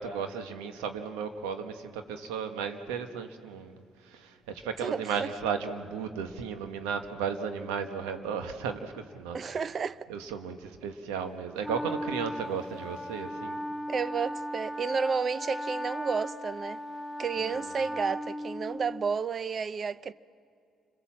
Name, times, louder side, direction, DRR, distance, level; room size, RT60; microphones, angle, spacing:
voice 1, 0.0-9.4 10.1-13.6 17.4-17.7, right 6 dB, 90° right, 1.3 m, -35 dB
voice 2, 4.8-5.3 9.3-10.1 13.9-16.8 17.2-20.1, right 5 dB, 50° right, 0.6 m, -31 dB
Wind instrument woodwind instrument, 11.6-19.2, equal, 15° left, 1.0 m, -37 dB
29.5 x 22.0 x 7.4 m
supercardioid pair, 55°, 0 cm